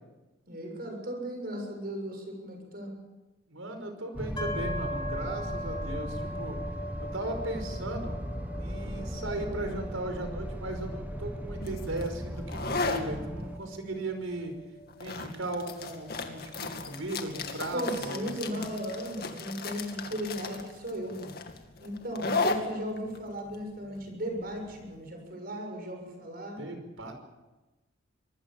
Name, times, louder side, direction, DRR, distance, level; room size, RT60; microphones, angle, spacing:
voice 1, 0.5-2.9 17.7-21.3 21.8-26.6, equal, 50° right, 3 dB, 7.0 m, -36 dB
voice 2, 3.5-6.6 7.0-8.2 8.6-14.5 15.0-18.6 26.6-27.1, right 2 dB, 90° right, 6 dB, 5.4 m, -37 dB
sound 1, 4.1-13.6, equal, 10° right, 1.2 m, -37 dB
sound 2, 4.4-18.1, left 1 dB, 25° left, 3.6 m, -42 dB
sound 3, 11.6-25.0, left 3 dB, 50° left, 2.3 m, -36 dB
25.0 x 19.5 x 7.4 m, 1.1 s
head